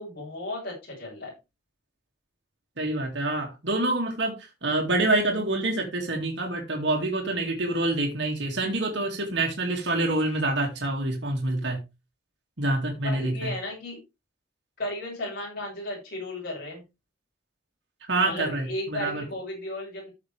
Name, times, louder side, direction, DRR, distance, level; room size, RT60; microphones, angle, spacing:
voice 1, 0.0-1.3 13.0-14.0 14.8-16.8 18.2-20.1, left 1 dB, 50° left, -5 dB, 6.0 m, -35 dB
voice 2, 2.8-4.4 4.6-11.8 12.6-13.5 18.1-19.2, right 2 dB, 60° right, 0 dB, 2.3 m, -26 dB
13.5 x 6.5 x 3.4 m, 0.25 s
head